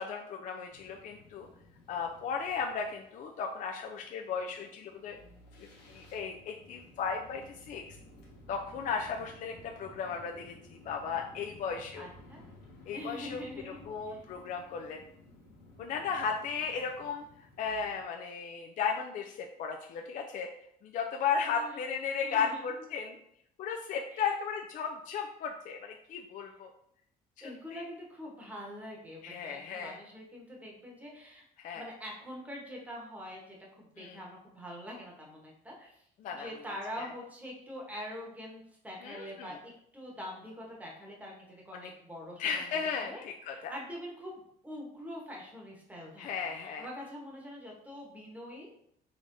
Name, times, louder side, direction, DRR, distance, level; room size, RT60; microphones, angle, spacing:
voice 1, 0.0-1.5 1.9-5.2 5.6-7.8 8.5-12.1 12.9-15.0 15.8-17.2 17.6-20.5 20.8-23.2 23.6-26.7 27.4-27.9 29.2-30.0 31.6-31.8 34.0-34.2 36.2-36.5 37.0-37.1 39.0-39.6 41.7-41.9 42.4-43.7 46.2-46.9, left 6 dB, 50° left, 2 dB, 0.4 m, -35 dB
sound 1, 0.7-18.0, left 1 dB, 90° left, 0.9 m, -56 dB
voice 2, 12.0-12.4 12.9-14.2 21.4-21.7 22.2-22.6 24.1-24.2 27.4-31.4 31.7-36.0 36.4-42.5 43.0-43.2 43.5-46.3 46.6-48.7, equal, 10° right, -2 dB, 1.0 m, -44 dB
3.7 x 3.3 x 2.6 m, 0.72 s
cardioid pair, 110°, 17 cm